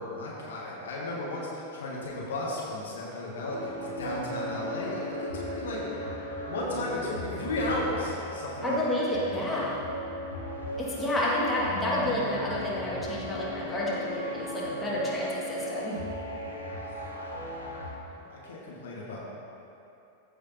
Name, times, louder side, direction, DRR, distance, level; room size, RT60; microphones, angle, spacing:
voice 1, 0.0-5.8 6.4-9.0 16.8-17.1 18.1-19.2, left 1 dB, 65° left, -4 dB, 1.5 m, -34 dB
sound 1, 3.4-17.9, equal, 85° right, 1.2 m, -36 dB
voice 2, 8.6-9.7 10.8-16.0, left 1 dB, 10° left, -6 dB, 1.7 m, -30 dB
14.0 x 6.0 x 2.7 m, 2.8 s
figure-of-eight pair, 90°, 0 cm